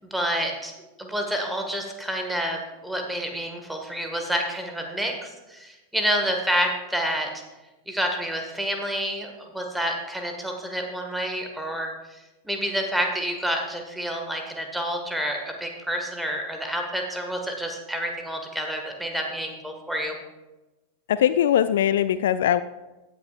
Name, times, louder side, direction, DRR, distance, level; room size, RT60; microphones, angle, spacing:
voice 1, 0.1-0.7 1.0-7.3 7.9-12.2 12.4-20.1, equal, 5° right, 2 dB, 1.8 m, -28 dB
voice 2, 21.1-22.6, left 10 dB, 60° left, 14 dB, 0.3 m, -21 dB
16.0 x 9.8 x 2.5 m, 1.1 s
figure-of-eight pair, 90°, 0 cm